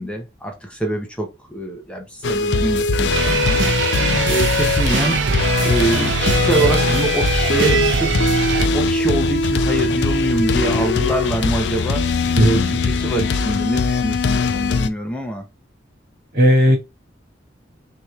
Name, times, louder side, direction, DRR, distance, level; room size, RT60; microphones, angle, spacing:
voice 1, 0.0-3.7 4.3-5.2 5.6-12.0 12.4-15.4, right 1 dB, 5° left, 0.7 m, -24 dB
sound 1, 2.2-14.9, left 4 dB, 70° left, 0.5 m, -20 dB
sound 2, 3.1-8.7, right 5 dB, 80° right, 0.6 m, -21 dB
voice 2, 12.3-12.8 16.3-16.8, equal, 55° right, 2.3 m, -15 dB
6.1 x 2.9 x 2.4 m
head